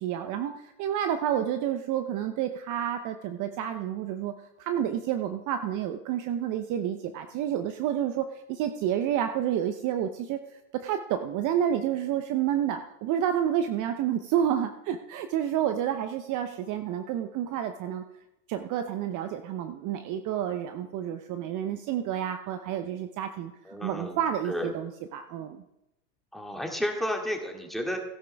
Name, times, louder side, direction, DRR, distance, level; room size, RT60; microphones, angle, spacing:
voice 1, 0.0-4.3 4.6-10.4 10.8-18.0 18.5-25.6, right 10 dB, 40° right, 8 dB, 0.9 m, -29 dB
voice 2, 23.6-24.2 24.5-24.7 26.3-28.0, equal, ahead, 1 dB, 2.3 m, -32 dB
17.0 x 10.5 x 3.5 m, 0.89 s
hypercardioid pair, 105°, 49 cm